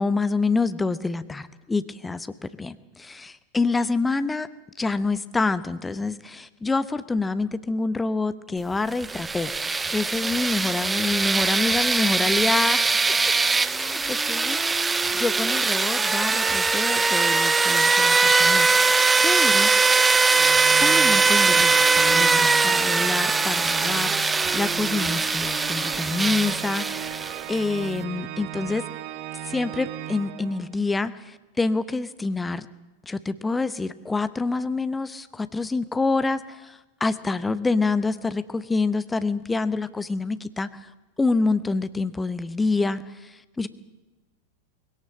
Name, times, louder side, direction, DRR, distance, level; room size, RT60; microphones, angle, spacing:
voice 1, 0.0-4.5 4.8-9.5 9.9-12.8 13.7-18.7 19.2-20.2 20.7-27.2 27.5-28.8 29.4-32.7 33.1-40.9 41.2-43.7, left 3 dB, 10° left, 14 dB, 0.9 m, -27 dB
sound 1, 8.9-27.6, right 4 dB, 10° right, 0.6 m, -21 dB
Organ, 20.3-30.9, right 14 dB, 45° right, 1.0 m, -36 dB
20.0 x 17.5 x 7.5 m, 1.1 s
figure-of-eight pair, 90°, 0 cm